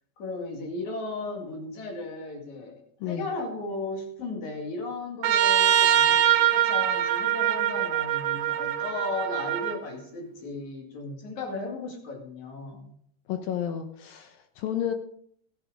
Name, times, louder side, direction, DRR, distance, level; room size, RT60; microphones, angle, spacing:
voice 1, 0.2-12.9, left 2 dB, 50° left, 1 dB, 3.3 m, -36 dB
Trumpet, 5.2-9.8, right 10 dB, 75° right, 2.5 m, -23 dB
voice 2, 13.3-14.9, left 10 dB, 75° left, 7 dB, 2.3 m, -31 dB
14.5 x 9.3 x 5.0 m, 0.64 s
omnidirectional pair, 4.8 m